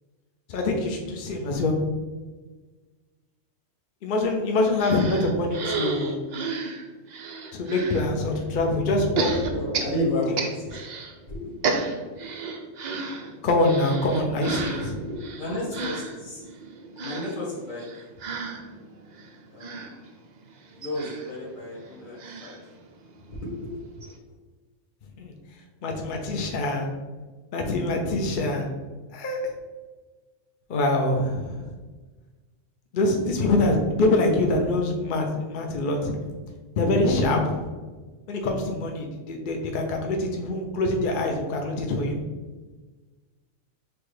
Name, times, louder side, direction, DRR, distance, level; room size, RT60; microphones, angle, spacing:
voice 1, 0.5-1.8 4.0-6.2 7.5-9.3 13.4-14.9 25.2-25.3 25.8-26.9 27.5-28.7 29.1-29.4 30.7-31.7 32.9-36.1 36.8-37.6 38.3-42.2, left 2 dB, 55° left, 2 dB, 0.6 m, -24 dB
sound 1, 4.8-8.1 9.2-11.1 11.4-23.4 23.7-23.8 24.0-24.2, right 4 dB, 70° right, 0.4 m, -33 dB
voice 2, 9.0-10.8 11.3-11.8 14.5-14.7 15.0-16.4 17.0-17.9 19.5-20.0 20.7-22.6 23.3-23.7, left 1 dB, 85° left, -5 dB, 1.5 m, -32 dB
6.0 x 2.3 x 3.2 m, 1.3 s
omnidirectional pair, 1.4 m